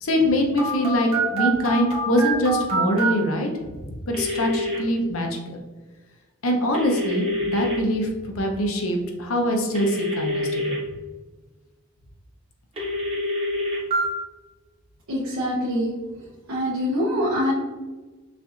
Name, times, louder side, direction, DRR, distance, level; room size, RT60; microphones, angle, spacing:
voice 1, 0.0-3.5 3.8-5.6 6.4-10.8, equal, 75° left, 2 dB, 0.8 m, -23 dB
Telephone, 0.6-3.1 4.1-4.8 6.7-7.8 9.8-10.8 12.8-14.0, right 1 dB, 25° right, 1.2 m, -26 dB
voice 2, 15.1-15.9 16.5-17.5, equal, 85° right, -6 dB, 0.9 m, -24 dB
6.5 x 2.6 x 2.5 m, 1.3 s
head